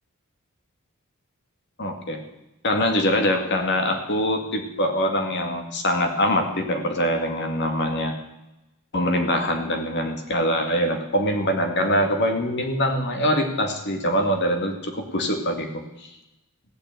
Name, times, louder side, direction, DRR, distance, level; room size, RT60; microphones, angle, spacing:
voice 1, 1.8-2.2 2.6-8.1 8.9-15.8, equal, 55° left, 4 dB, 2.0 m, -23 dB
15.5 x 6.1 x 9.1 m, 0.94 s
head